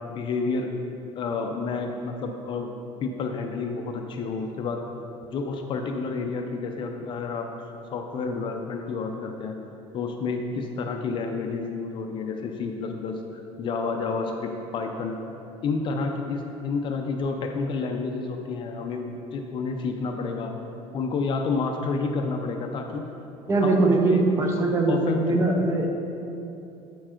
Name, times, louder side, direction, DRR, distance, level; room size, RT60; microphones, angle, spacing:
voice 1, 0.1-0.7 1.2-2.7 3.0-4.8 5.3-7.5 7.9-9.6 9.9-13.2 13.6-15.2 15.6-20.5 20.9-23.0 23.6-25.4, left 4 dB, 40° left, 4 dB, 0.5 m, -30 dB
voice 2, 23.5-25.9, right 2 dB, 20° right, 1 dB, 0.7 m, -21 dB
8.5 x 4.5 x 4.4 m, 2.8 s
cardioid pair, 150°, 14 cm